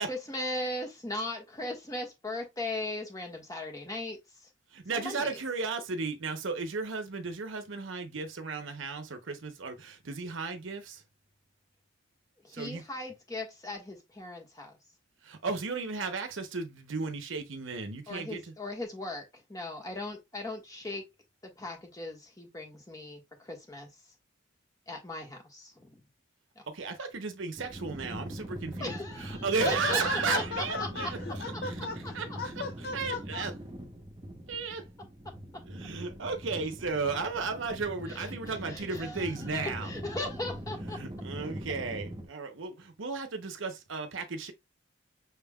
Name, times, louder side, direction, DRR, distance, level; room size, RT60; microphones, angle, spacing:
voice 1, 0.1-4.5 4.9-5.4 12.4-14.7 18.1-21.0 21.4-23.9 24.9-26.0 26.5-26.7 28.8-30.0 30.3-31.1 32.0-32.1 38.1-41.0, left 2 dB, 20° left, 1.4 m, -38 dB
voice 2, 4.7-11.0 12.5-12.8 15.2-18.4 26.7-28.9 29.2-31.2 31.6-31.7 32.1-32.3 32.9-33.5 34.5-34.9 35.7-39.9 41.0-44.5, right 4 dB, 75° right, 0.8 m, -34 dB
sound 1, 27.6-42.3, equal, 20° right, 0.9 m, -41 dB
voice 3, 29.6-33.4, left 4 dB, 50° left, 0.4 m, -37 dB
6.1 x 3.6 x 2.3 m
head